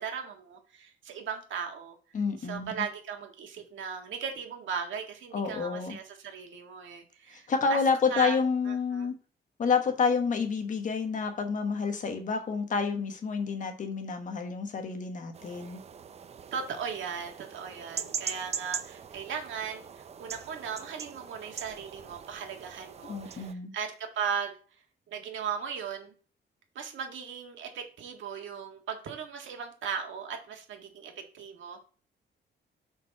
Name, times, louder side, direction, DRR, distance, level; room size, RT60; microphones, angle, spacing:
voice 1, 0.0-2.0 2.4-7.8 8.1-8.4 8.7-9.1 16.5-24.5 25.1-26.2 26.8-31.8, right 7 dB, 85° right, 3 dB, 1.8 m, -37 dB
voice 2, 2.1-2.7 5.3-6.0 7.3-9.1 9.6-15.8 23.1-23.7, left 5 dB, 40° left, 6 dB, 1.3 m, -29 dB
sound 1, 15.3-23.5, right 7 dB, 35° right, 0.5 m, -41 dB
6.5 x 5.8 x 4.7 m, 0.39 s
wide cardioid pair, 175°, 19 cm